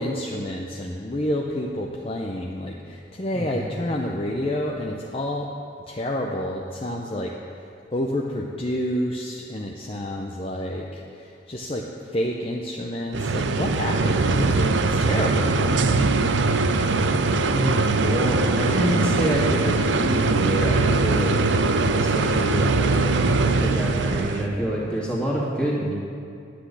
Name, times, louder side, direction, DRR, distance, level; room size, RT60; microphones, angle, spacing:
voice 1, 0.0-5.5 5.9-7.3 7.9-16.1, left 1 dB, 30° left, -1 dB, 0.6 m, -29 dB
voice 2, 3.3-3.7 17.5-21.4 22.0-25.9, right 1 dB, 5° left, -6 dB, 2.2 m, -27 dB
sound 1, 13.1-24.5, right 3 dB, 75° right, 0.5 m, -21 dB
10.0 x 6.1 x 8.3 m, 2.5 s
head